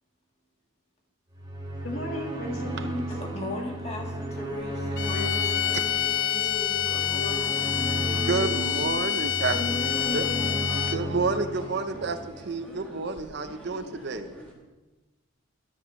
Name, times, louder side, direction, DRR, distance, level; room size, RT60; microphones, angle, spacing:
sound 1, 1.3-12.7, right 1 dB, 20° right, 1.6 m, -34 dB
voice 1, 1.8-3.1 9.5-10.5, left 1 dB, 70° left, 1 dB, 1.7 m, -34 dB
voice 2, 3.1-8.5, left 2 dB, 30° left, -1 dB, 1.8 m, -38 dB
sound 2, 5.0-11.2, left 11 dB, 50° left, 0.4 m, -27 dB
voice 3, 8.3-9.6 10.1-10.3 10.9-14.3, right 4 dB, 50° right, 9 dB, 0.5 m, -29 dB
sound 3, 9.4-14.5, right 1 dB, 5° left, 1.7 m, -45 dB
12.5 x 4.9 x 6.2 m, 1.2 s
head